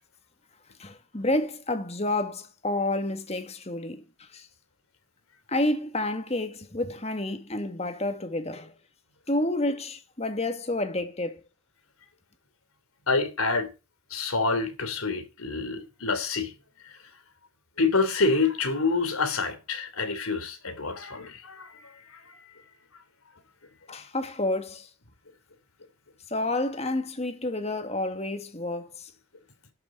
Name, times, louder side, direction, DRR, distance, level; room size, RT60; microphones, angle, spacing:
voice 1, 0.8-4.5 5.5-8.7 9.3-11.4 23.9-24.9 26.3-29.1, left 2 dB, 30° left, 1.8 m, -29 dB
voice 2, 13.1-13.7 14.1-16.5 16.8-16.9 17.8-22.4, left 3 dB, 90° left, 3.2 m, -27 dB
12.0 x 6.8 x 7.9 m
head